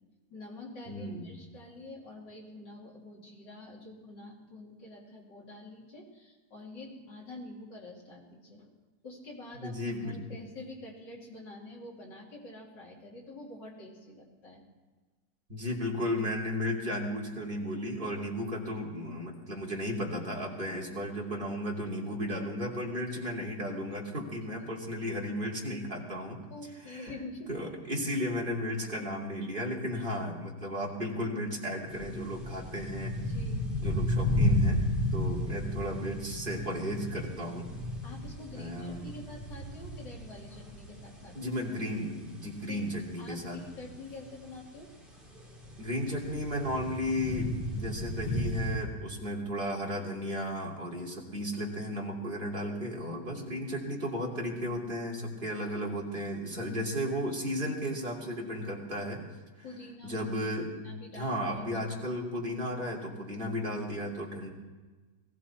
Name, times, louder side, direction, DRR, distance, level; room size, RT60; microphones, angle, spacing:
voice 1, 0.3-8.7 9.0-9.7 10.0-14.6 26.5-27.6 33.3-33.6 38.0-41.4 42.7-42.9 43.2-44.9 59.6-60.3 60.8-61.3, left 2 dB, 90° left, -2 dB, 3.3 m, -46 dB
voice 2, 0.9-1.3 9.6-10.2 15.5-26.4 26.9-27.1 27.5-33.1 33.8-34.8 35.1-37.7 38.5-39.1 41.3-43.6 45.8-59.2 60.0-60.7 61.1-64.5, equal, 30° right, -2 dB, 2.6 m, -34 dB
sound 1, 31.9-48.8, left 1 dB, ahead, 3.7 m, -33 dB
19.0 x 15.5 x 4.3 m, 1.3 s
omnidirectional pair, 1.9 m